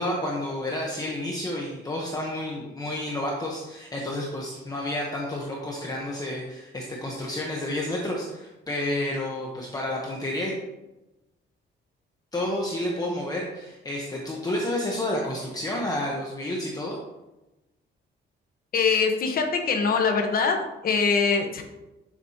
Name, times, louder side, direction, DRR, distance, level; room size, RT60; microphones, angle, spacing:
voice 1, 0.0-10.6 12.3-17.0, left 1 dB, 20° left, -2 dB, 1.0 m, -30 dB
voice 2, 18.7-21.6, left 5 dB, 45° left, 4 dB, 1.2 m, -23 dB
10.0 x 7.4 x 2.9 m, 1.0 s
wide cardioid pair, 180°, 20 cm